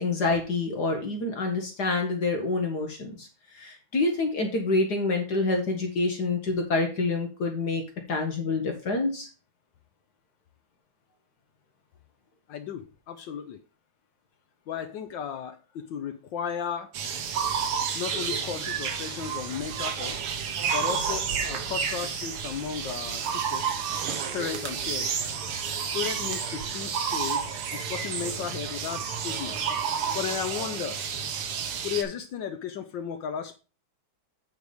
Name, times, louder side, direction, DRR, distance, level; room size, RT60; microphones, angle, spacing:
voice 1, 0.0-3.3 3.5-7.8 8.1-9.3, left 3 dB, 50° left, 3 dB, 1.8 m, -27 dB
voice 2, 12.5-13.6 14.7-16.9 17.9-20.2 20.7-23.8 24.3-25.2 25.9-29.6 30.1-31.0 31.8-33.6, left 8 dB, 70° left, 10 dB, 1.2 m, -34 dB
sound 1, 16.9-32.0, right 7 dB, 85° right, 2.1 m, -30 dB
8.2 x 4.7 x 5.0 m, 0.33 s
omnidirectional pair, 2.4 m